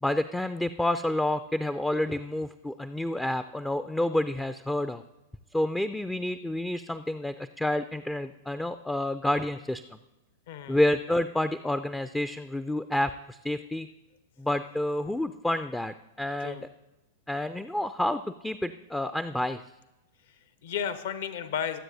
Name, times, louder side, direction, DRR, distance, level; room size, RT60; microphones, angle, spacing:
voice 1, 0.0-5.0 5.5-9.8 10.7-13.9 14.4-16.6 17.3-19.6, left 1 dB, 5° left, 12 dB, 0.3 m, -29 dB
voice 2, 10.5-10.8 16.4-16.6 20.3-21.8, left 8 dB, 60° left, 12 dB, 0.8 m, -34 dB
23.0 x 7.6 x 2.7 m, 1.0 s
figure-of-eight pair, 95°, 0 cm